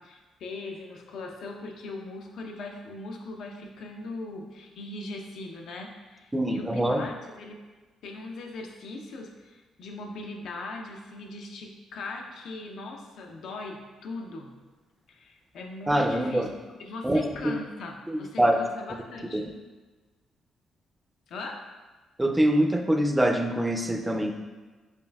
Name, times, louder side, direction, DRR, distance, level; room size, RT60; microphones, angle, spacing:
voice 1, 0.0-7.6 8.0-14.5 15.1-16.5 16.8-19.4 21.3-21.6, left 2 dB, 70° left, 2 dB, 0.5 m, -40 dB
voice 2, 6.3-7.0 15.9-16.5 17.0-17.3 18.1-18.6 19.3-19.5 22.2-24.3, right 1 dB, 10° right, 4 dB, 0.4 m, -24 dB
5.3 x 2.5 x 2.3 m, 1.3 s
cardioid pair, 90°, 0 cm